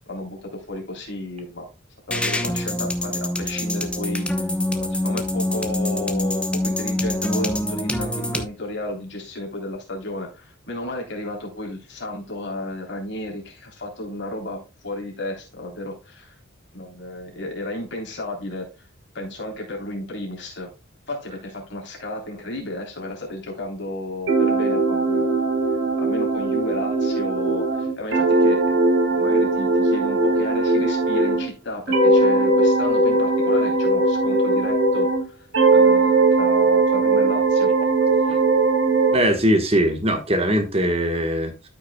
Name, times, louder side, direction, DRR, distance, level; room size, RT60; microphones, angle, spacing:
voice 1, 0.1-1.7 2.1-4.5 4.8-16.4 16.7-18.7 19.1-20.7 21.1-25.4 26.0-28.8 29.1-37.7, left 1 dB, 55° left, 3.4 m, -33 dB
sound 1, 2.1-8.4, left 1 dB, 5° left, 0.8 m, -25 dB
sound 2, 24.3-31.5 31.9-35.2 35.5-39.2, right 2 dB, 60° right, 3.2 m, -19 dB
voice 2, 39.1-41.7, equal, 30° right, 1.2 m, -21 dB
13.0 x 5.9 x 2.2 m
head